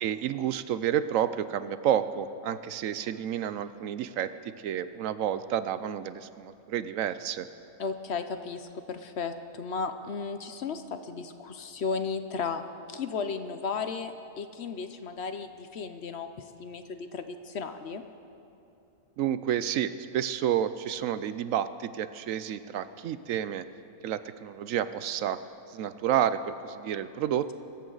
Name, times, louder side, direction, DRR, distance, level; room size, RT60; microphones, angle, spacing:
voice 1, 0.0-7.5 19.2-23.7 24.0-25.4 25.7-27.5, right 10 dB, 75° right, 13 dB, 0.9 m, -30 dB
voice 2, 7.8-12.6 12.9-16.3 16.6-18.0, left 5 dB, 55° left, 9 dB, 0.9 m, -34 dB
24.5 x 14.0 x 3.9 m, 2.8 s
omnidirectional pair, 1.5 m